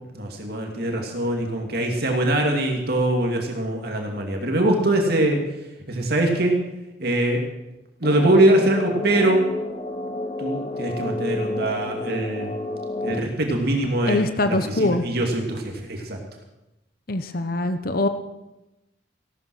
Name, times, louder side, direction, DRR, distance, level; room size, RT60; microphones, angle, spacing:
voice 1, 0.1-5.4 5.9-6.6 7.0-7.4 8.0-9.4 10.4-12.6 13.0-16.2, right 1 dB, 55° right, 2 dB, 2.4 m, -22 dB
sound 1, 8.0-13.2, left 2 dB, 35° left, 1.3 m, -30 dB
voice 2, 14.1-15.0 17.1-18.1, left 2 dB, 50° left, 9 dB, 0.9 m, -23 dB
17.0 x 12.5 x 6.3 m, 0.95 s
head